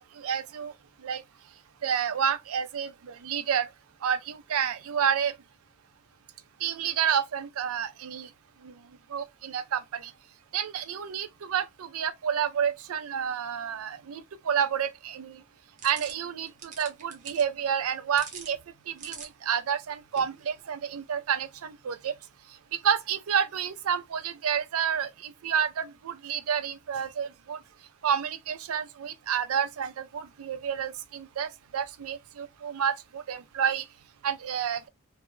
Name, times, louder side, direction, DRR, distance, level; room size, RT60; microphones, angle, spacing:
voice 1, 0.2-0.7 1.0-1.2 1.8-3.7 4.0-5.3 6.6-8.3 8.6-8.7 9.1-10.1 10.5-15.4 15.8-18.6 18.9-22.1 22.8-27.6 28.0-33.8 34.2-34.9, right 8 dB, 90° right, 0.4 m, -29 dB
sound 1, 15.8-20.9, right 5 dB, 35° right, 0.7 m, -48 dB
2.1 x 2.1 x 3.0 m
head